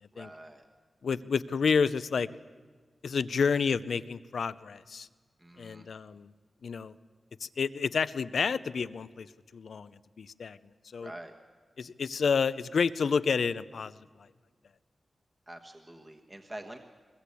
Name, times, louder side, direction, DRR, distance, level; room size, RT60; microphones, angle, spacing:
voice 1, 0.1-0.7 5.4-5.9 11.0-11.3 15.5-16.8, right 1 dB, 15° right, 3 dB, 1.3 m, -46 dB
voice 2, 1.0-2.3 3.0-5.1 5.6-6.3 6.6-6.9 7.4-9.3 9.5-10.6 10.9-11.1 11.8-14.0, left 5 dB, 70° left, 16 dB, 0.6 m, -29 dB
22.0 x 21.5 x 8.4 m, 1.5 s
wide cardioid pair, 170°, 0 cm